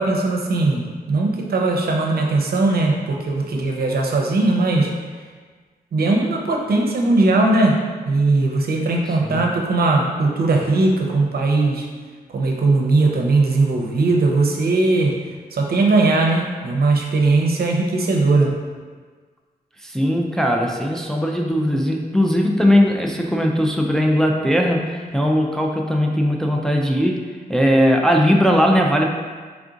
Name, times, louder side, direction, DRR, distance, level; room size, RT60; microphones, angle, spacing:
voice 1, 0.0-4.9 5.9-7.8 8.1-11.8 12.3-15.1 15.5-18.5, right 2 dB, 70° right, 0 dB, 0.6 m, -19 dB
voice 2, 19.8-29.1, equal, 5° left, 1 dB, 0.3 m, -19 dB
3.4 x 2.5 x 3.8 m, 1.5 s
cardioid pair, 70°, 16 cm